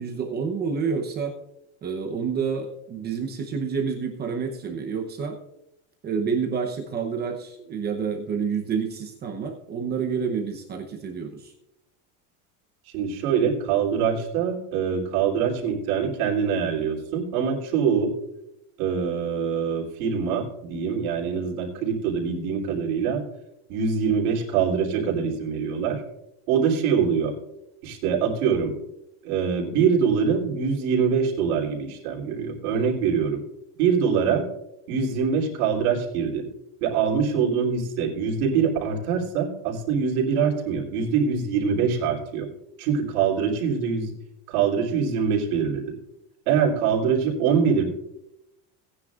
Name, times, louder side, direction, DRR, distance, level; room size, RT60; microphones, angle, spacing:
voice 1, 0.0-1.4 1.8-5.4 6.0-11.5, right 6 dB, 20° right, 2 dB, 0.8 m, -28 dB
voice 2, 12.9-18.1 18.8-23.2 23.7-26.0 26.5-27.3 27.8-28.7 29.2-33.4 33.8-34.5 34.9-36.5 36.8-42.5 42.8-44.1 44.5-45.8 46.5-47.8, right 6 dB, 80° right, -1 dB, 3.5 m, -24 dB
18.0 x 9.8 x 2.5 m, 0.85 s
cardioid pair, 175°, 44 cm